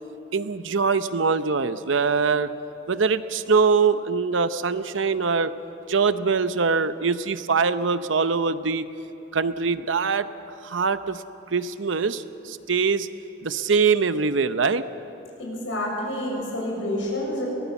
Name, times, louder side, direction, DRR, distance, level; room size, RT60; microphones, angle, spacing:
voice 1, 0.3-2.5 2.9-5.5 5.9-8.8 9.3-10.3 10.6-11.2 11.5-13.1 13.4-14.8, right 5 dB, 90° right, 12 dB, 0.8 m, -23 dB
voice 2, 15.4-17.5, left 1 dB, 90° left, -2 dB, 6.9 m, -28 dB
23.0 x 19.0 x 7.1 m, 2.9 s
head